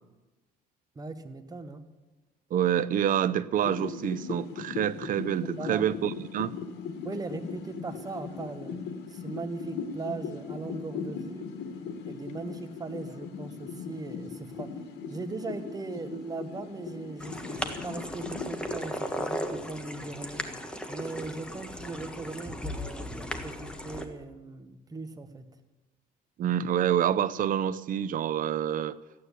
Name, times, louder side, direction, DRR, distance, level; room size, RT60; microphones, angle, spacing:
voice 1, 0.9-1.8 5.4-5.9 7.0-11.5 12.1-14.8 15.1-20.4 20.9-25.4, right 3 dB, 20° right, 8 dB, 1.3 m, -39 dB
voice 2, 2.5-6.5 26.4-29.0, right 10 dB, 55° right, 16 dB, 0.6 m, -27 dB
sound 1, 3.6-18.7, left 5 dB, 80° left, 1.7 m, -39 dB
sound 2, 17.2-24.0, equal, 5° left, 1.5 m, -36 dB
14.5 x 9.5 x 8.2 m, 1.1 s
cardioid pair, 110°, 17 cm